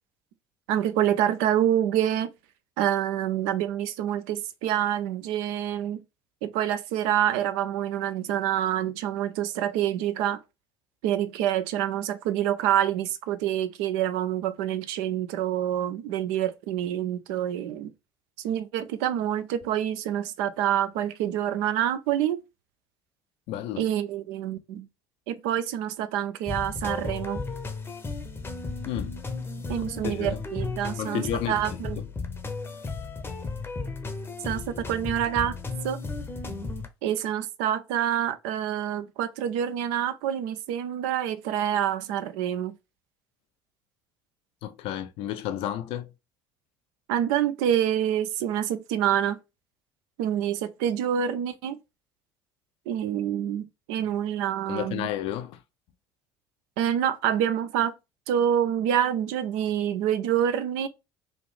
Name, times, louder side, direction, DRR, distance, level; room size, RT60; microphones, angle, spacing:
voice 1, 0.7-2.3 2.8-6.0 6.4-10.4 11.0-17.9 18.4-22.4 23.8-24.9 25.3-27.4 29.7-32.0 34.4-35.6 35.8-36.0 37.0-42.7 47.1-49.4 50.2-51.8 52.9-55.1 56.8-57.9 58.3-60.9, right 10 dB, 60° right, 0.4 m, -27 dB
voice 2, 23.5-23.8 28.9-29.1 29.8-30.4 31.0-31.8 44.6-46.1 54.7-55.6, left 11 dB, 55° left, 0.4 m, -32 dB
sound 1, 26.5-36.9, left 3 dB, 20° left, 0.7 m, -34 dB
3.3 x 2.5 x 3.2 m
figure-of-eight pair, 60°, 12 cm